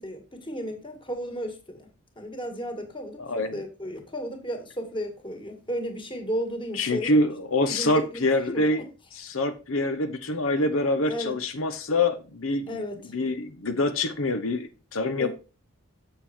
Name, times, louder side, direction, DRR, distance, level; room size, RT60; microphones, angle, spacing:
voice 1, 0.0-1.9 2.2-3.2 3.5-7.2 7.7-8.9 11.1-11.4 12.7-13.0 15.2-15.3, equal, 25° left, 2.1 m, -34 dB
voice 2, 3.2-3.6 6.7-8.8 9.1-12.8 13.1-15.3, left 2 dB, 90° left, 1.0 m, -25 dB
7.5 x 6.8 x 4.4 m
head